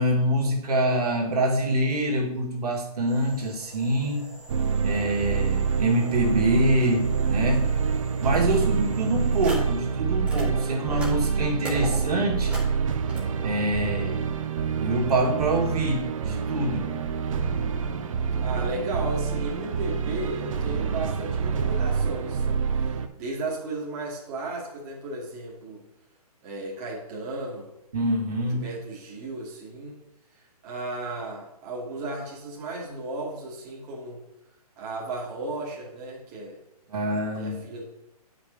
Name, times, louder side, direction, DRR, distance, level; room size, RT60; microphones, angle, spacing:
voice 1, 0.0-4.3 4.8-7.7 8.2-12.6 13.4-14.2 14.8-16.9 27.9-28.6 36.9-37.5, right 1 dB, 75° right, -1 dB, 1.8 m, -25 dB
sound 1, 3.1-9.9 10.2-13.2, right 1 dB, 5° right, 1.2 m, -41 dB
sound 2, 4.5-23.1, right 6 dB, 55° right, 0.6 m, -27 dB
voice 2, 18.4-25.8 26.4-27.7 28.5-30.0 30.6-34.2 34.8-36.6 37.3-37.8, right 2 dB, 25° right, -4 dB, 1.3 m, -35 dB
8.3 x 5.0 x 3.6 m, 0.87 s
hypercardioid pair, 160°, 20 cm